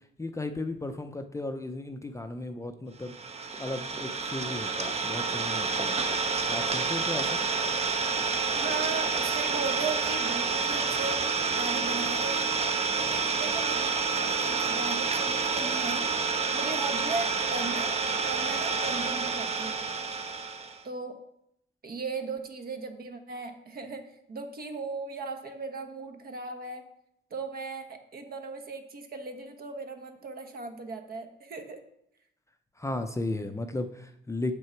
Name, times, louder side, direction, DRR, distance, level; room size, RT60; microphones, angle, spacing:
voice 1, 0.2-3.1 3.6-6.2 6.5-7.4 32.8-34.5, left 2 dB, 15° left, 7 dB, 0.6 m, -35 dB
Idling, 3.1-20.8, right 4 dB, 30° right, 0.8 m, -29 dB
voice 2, 8.5-11.2 11.5-12.5 12.9-16.1 16.5-17.9 18.2-19.9 20.8-21.2 21.8-26.8 27.3-31.8, right 4 dB, 50° right, 6 dB, 1.2 m, -37 dB
6.8 x 6.4 x 4.5 m, 0.76 s
cardioid pair, 90°, 20 cm